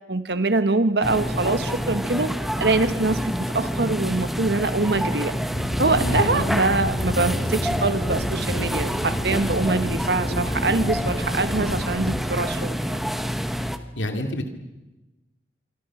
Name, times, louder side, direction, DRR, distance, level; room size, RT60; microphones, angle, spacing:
voice 1, 0.1-2.3 2.6-5.3 5.8-13.0, right 3 dB, 65° right, 11 dB, 1.3 m, -24 dB
sound 1, 1.0-13.8, equal, ahead, 1.1 m, -27 dB
sound 2, 5.5-12.2, equal, 55° left, 7.7 m, -30 dB
voice 2, 6.0-6.5 14.0-14.6, equal, 85° left, 5 dB, 2.7 m, -28 dB
27.5 x 24.5 x 6.2 m, 1.0 s
head